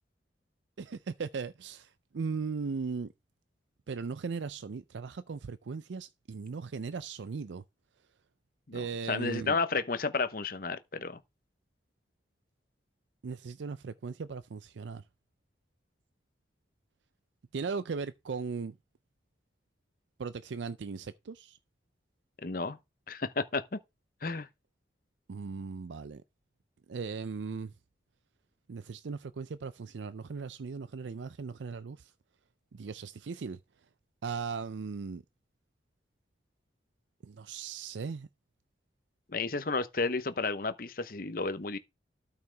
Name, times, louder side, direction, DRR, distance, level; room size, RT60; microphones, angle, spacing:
voice 1, 0.8-3.1 3.9-7.6 8.7-9.6 13.2-15.0 17.5-18.7 20.2-21.6 25.3-26.2 26.9-27.7 28.7-32.1 32.7-33.6 34.2-35.2 37.2-38.3, right 5 dB, 80° right, 0.5 m, -38 dB
voice 2, 8.7-11.2 22.4-22.8 23.1-23.8 24.2-24.5 39.3-41.8, left 4 dB, 50° left, 0.9 m, -32 dB
13.0 x 5.7 x 3.4 m
head